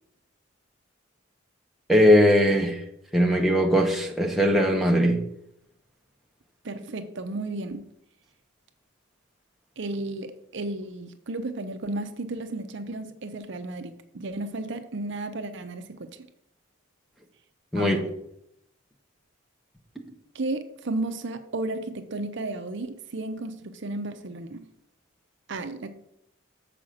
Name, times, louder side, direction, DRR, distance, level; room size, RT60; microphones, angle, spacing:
voice 1, 1.9-2.8 3.1-5.2 17.7-18.0, equal, ahead, 0.9 m, -20 dB
voice 2, 6.6-7.9 9.8-16.1 17.7-18.1 20.3-24.6 25.5-25.9, right 2 dB, 55° right, 0.6 m, -33 dB
7.3 x 5.0 x 6.3 m
head